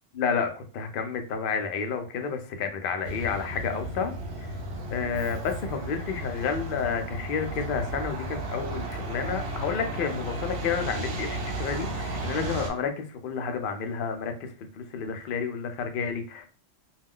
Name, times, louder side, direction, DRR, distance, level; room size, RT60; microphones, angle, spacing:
voice 1, 0.1-4.1 4.4-4.6 4.9-16.5, left 6 dB, 60° left, 6 dB, 0.6 m, -30 dB
Truck, 3.0-12.7, right 1 dB, 60° right, 0.8 m, -34 dB
2.3 x 2.2 x 3.5 m, 0.40 s
omnidirectional pair, 1.2 m